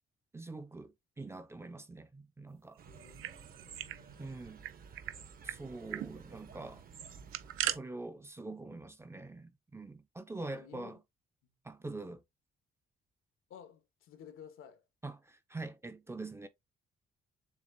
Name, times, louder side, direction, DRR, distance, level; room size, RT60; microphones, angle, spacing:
voice 1, 0.3-2.8 4.2-4.6 5.4-6.8 7.6-11.0 11.6-12.2 15.0-16.5, right 2 dB, 10° right, 0.5 m, -44 dB
voice 2, 2.8-4.3 10.3-11.0 11.4-11.5 13.5-14.8, left 8 dB, 85° left, 1.2 m, -55 dB
sound 1, 2.8-7.8, right 6 dB, 45° right, 0.8 m, -53 dB
sound 2, 2.9-4.0 4.3-4.4 4.6-5.2 5.5-5.6 5.9-6.1 7.0-7.8, right 13 dB, 90° right, 0.5 m, -38 dB
7.2 x 2.4 x 2.7 m
cardioid pair, 155°, 21 cm